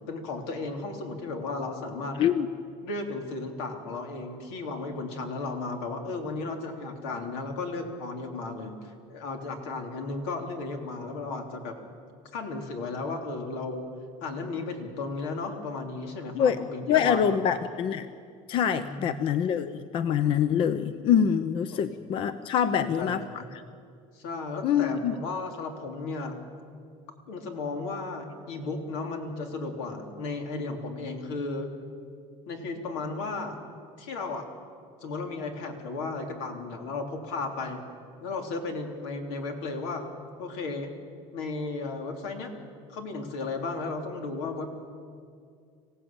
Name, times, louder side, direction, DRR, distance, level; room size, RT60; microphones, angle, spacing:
voice 1, 0.1-2.2 2.8-11.7 12.3-13.9 14.2-17.6 18.8-19.1 21.7-21.9 22.6-23.5 24.2-26.4 27.3-31.7 32.5-33.6 34.0-34.4 35.0-37.8 38.2-40.1 40.4-40.9 41.3-42.5 42.9-44.7, left 3 dB, 85° left, 3 dB, 3.5 m, -34 dB
voice 2, 16.9-18.1 18.5-23.2 24.6-25.2, left 8 dB, 45° left, 12 dB, 0.7 m, -25 dB
26.0 x 16.5 x 8.9 m, 2.3 s
cardioid pair, 150°, 13 cm